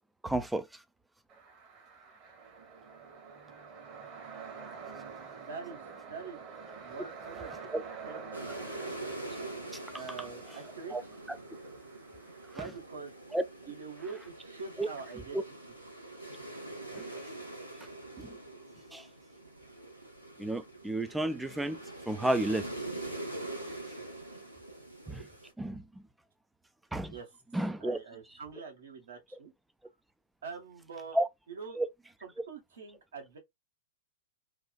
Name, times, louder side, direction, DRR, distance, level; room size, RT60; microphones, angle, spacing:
voice 1, 0.2-0.6 7.7-7.8 10.9-11.0 13.3-13.4 14.8-14.9 16.9-17.0 18.2-18.3 18.9-19.0 20.4-21.8 22.1-22.7 25.1-25.2 25.6-25.8 26.9-27.1 27.5-28.0 31.2-31.3 31.8-31.9, right 1 dB, 5° right, 0.3 m, -31 dB
sound 1, 1.3-12.7, right 5 dB, 30° right, 1.1 m, -47 dB
voice 2, 5.4-6.4 6.8-7.5 8.0-8.6 9.9-11.0 12.5-13.1 13.7-15.5 27.1-27.3 27.8-29.5 30.4-31.2 31.5-31.8 32.2-33.4, right 5 dB, 65° right, 1.2 m, -44 dB
sound 2, 8.3-25.5, right 2 dB, 90° right, 0.9 m, -44 dB
2.8 x 2.4 x 2.2 m
figure-of-eight pair, 100°, 0 cm